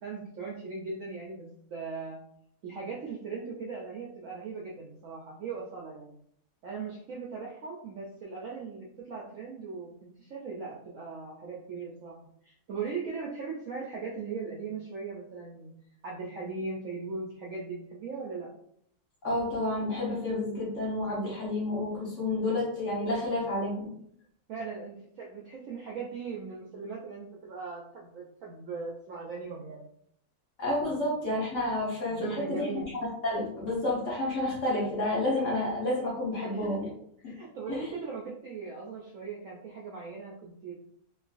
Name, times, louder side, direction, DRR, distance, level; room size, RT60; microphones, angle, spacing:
voice 1, 0.0-2.2 2.6-6.2 6.6-12.2 12.4-15.7 16.0-18.5 24.5-29.9 32.1-32.9 36.4-36.8 37.2-40.7, right 4 dB, 70° right, -3 dB, 0.7 m, -39 dB
voice 2, 19.2-23.9 30.6-32.7 33.2-36.9 37.2-37.3 37.7-37.9, left 1 dB, 50° left, -5 dB, 1.2 m, -30 dB
3.1 x 2.4 x 2.4 m, 0.68 s
omnidirectional pair, 1.8 m